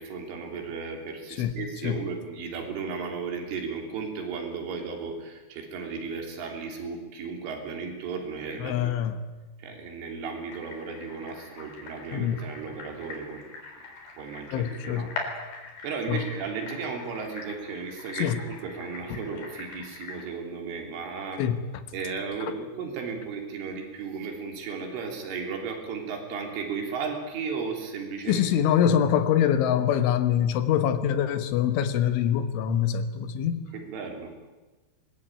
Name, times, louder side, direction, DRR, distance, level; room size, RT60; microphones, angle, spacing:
voice 1, 0.0-9.0 9.6-13.7 14.2-15.1 15.8-21.4 21.9-28.4 33.7-34.3, right 5 dB, 85° right, 3 dB, 5.8 m, -35 dB
voice 2, 8.6-9.2 12.1-12.4 14.5-15.1 16.1-16.2 18.2-18.4 19.1-19.2 21.4-21.6 22.5-22.6 28.3-33.6, left 9 dB, 80° left, 10 dB, 3.8 m, -24 dB
sound 1, 10.5-20.2, left 4 dB, 65° left, 5.9 m, -42 dB
23.5 x 20.5 x 9.0 m, 1.2 s
omnidirectional pair, 5.5 m